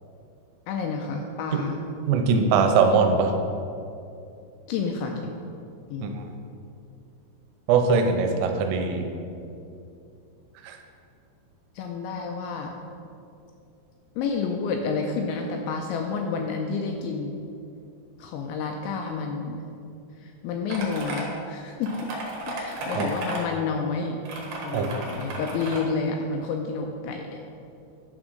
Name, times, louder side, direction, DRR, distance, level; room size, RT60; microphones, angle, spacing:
voice 1, 0.7-1.8 4.7-5.4 5.9-6.2 11.8-12.7 14.2-17.4 18.2-19.7 20.2-22.1 22.5-24.2 24.6-27.4, left 4 dB, 85° left, 2 dB, 2.6 m, -30 dB
voice 2, 2.1-3.3 6.0-6.2 7.7-9.0 10.6-10.8 23.0-23.1 24.7-24.9, right 5 dB, 90° right, 4 dB, 3.2 m, -21 dB
sound 1, 20.7-21.2 21.8-23.4 24.2-25.8, right 2 dB, 65° right, 2.8 m, -34 dB
11.0 x 3.7 x 6.3 m, 2.6 s
omnidirectional pair, 5.7 m